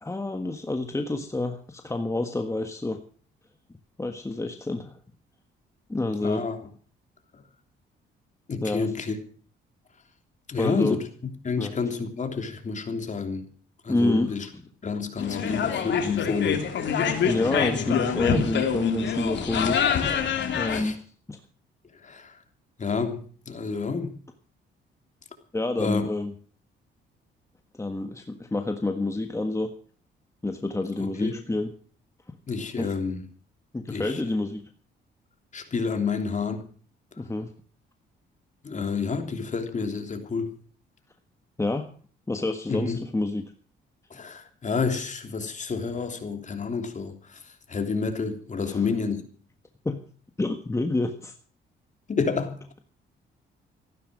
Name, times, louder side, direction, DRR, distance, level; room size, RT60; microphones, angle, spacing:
voice 1, 0.0-3.0 4.0-4.9 5.9-6.4 8.6-8.9 10.6-11.0 11.6-11.7 13.9-14.3 17.3-21.4 25.5-26.3 27.7-29.7 30.4-31.7 32.8-32.9 33.7-34.6 37.2-37.5 41.6-41.9 42.3-43.4 48.7-48.9 49.8-50.0 50.4-51.3, left 2 dB, 15° left, 1.5 m, -28 dB
voice 2, 6.2-6.6 8.5-9.2 10.5-11.1 11.4-13.5 13.8-14.5 14.8-16.7 20.7-20.9 22.0-22.4 22.8-24.1 25.8-26.0 31.0-31.3 32.5-33.2 33.9-34.2 35.5-36.6 38.6-40.5 42.7-43.0 44.1-49.3 52.1-52.6, left 5 dB, 40° left, 3.2 m, -29 dB
sound 1, 15.2-20.8, left 7 dB, 65° left, 2.9 m, -26 dB
15.0 x 12.0 x 6.3 m
cardioid pair, 90°, 20 cm